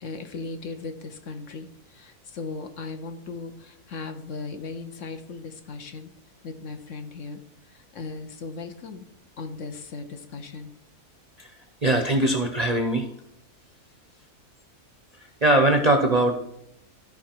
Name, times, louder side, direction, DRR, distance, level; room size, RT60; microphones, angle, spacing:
voice 1, 0.0-6.1 6.4-7.4 7.7-9.1 9.4-10.7, left 4 dB, 60° left, 7 dB, 1.1 m, -37 dB
voice 2, 11.8-13.1 15.4-16.4, right 1 dB, 35° right, 4 dB, 0.7 m, -21 dB
13.5 x 4.8 x 4.5 m, 0.77 s
omnidirectional pair, 1.6 m